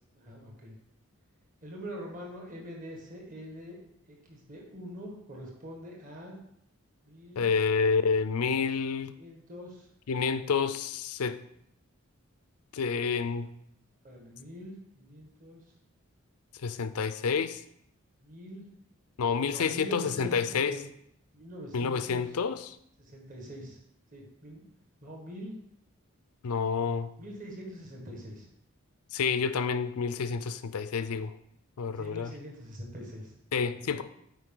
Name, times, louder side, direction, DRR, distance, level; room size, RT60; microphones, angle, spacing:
voice 1, 0.1-0.8 1.6-3.8 4.1-6.4 7.0-7.5 9.2-9.9 14.0-15.6 16.7-16.8 18.2-18.6 19.5-20.8 21.3-22.3 23.0-23.8 24.1-24.6 25.0-25.5 27.2-28.5 30.9-31.1 31.9-33.3 33.9-34.0, equal, 35° right, 1.6 m, -43 dB
voice 2, 7.4-9.2 10.1-11.4 12.7-13.5 16.6-17.6 19.2-20.7 21.7-22.8 26.4-27.1 29.1-31.3 31.8-32.3 33.5-34.0, left 5 dB, 85° left, 0.5 m, -29 dB
8.1 x 5.0 x 3.8 m
head